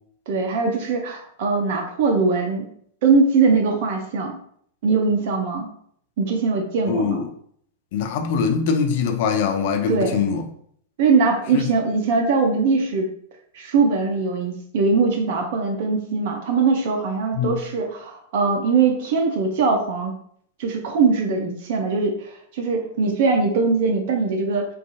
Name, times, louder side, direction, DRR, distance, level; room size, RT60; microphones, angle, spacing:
voice 1, 0.3-2.7 3.0-4.4 4.8-5.7 6.2-7.2 9.9-10.2 11.0-13.1 13.5-20.1 20.6-24.7, right 4 dB, 50° right, 0.3 m, -21 dB
voice 2, 6.9-7.2 7.9-10.4 11.5-11.6 17.4-17.6, left 6 dB, 50° left, 0.4 m, -22 dB
2.4 x 2.2 x 2.6 m
figure-of-eight pair, 95°, 0 cm